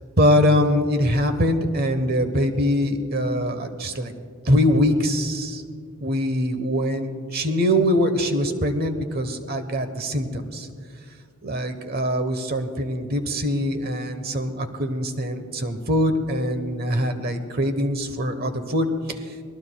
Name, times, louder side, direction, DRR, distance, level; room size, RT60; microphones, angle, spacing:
voice 1, 0.2-4.1 4.4-5.6 6.0-10.7 11.4-18.9, equal, 45° right, 8 dB, 1.1 m, -23 dB
27.5 x 19.5 x 2.3 m, 2.1 s
head